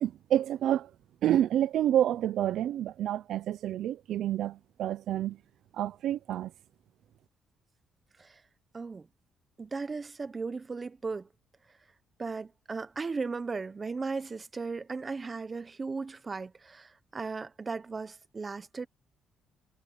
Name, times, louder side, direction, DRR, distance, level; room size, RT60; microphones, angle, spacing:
voice 1, 0.0-0.9 1.2-5.4 5.8-6.5, right 11 dB, 75° right, 0.7 m, -28 dB
voice 2, 8.7-9.1 9.6-11.3 12.2-18.9, right 4 dB, 30° right, 1.1 m, -36 dB
cardioid pair, 90°, 0 cm